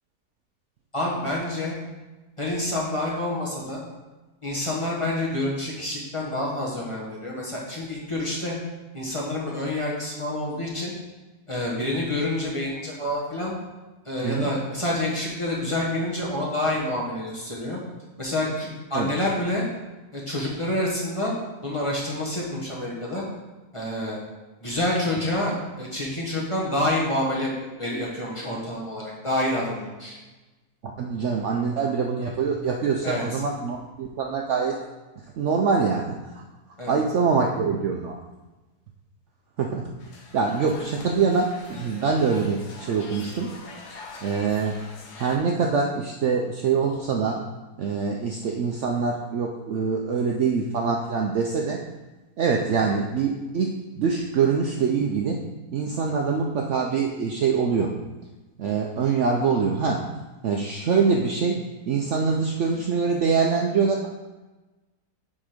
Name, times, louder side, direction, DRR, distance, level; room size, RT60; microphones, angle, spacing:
voice 1, 0.9-1.7 2.4-3.8 4.4-8.6 8.9-10.9 11.5-13.5 14.0-17.8 18.2-19.6 20.1-21.3 21.6-23.2 23.7-24.2 24.6-27.5 27.8-30.2 33.0-33.2 36.8-36.9, left 1 dB, 20° left, -5 dB, 1.3 m, -28 dB
voice 2, 31.0-34.8 35.4-36.4 36.9-38.2 39.6-39.9 40.3-43.5 44.2-44.8 45.1-47.4 47.8-51.8 52.4-55.4 55.7-57.9 58.6-60.0 60.4-61.6 61.9-64.1, right 5 dB, 65° right, 1 dB, 0.8 m, -24 dB
sound 1, 40.0-45.4, left 3 dB, 85° left, 1.5 m, -44 dB
7.4 x 3.9 x 5.1 m, 1.1 s
omnidirectional pair, 1.7 m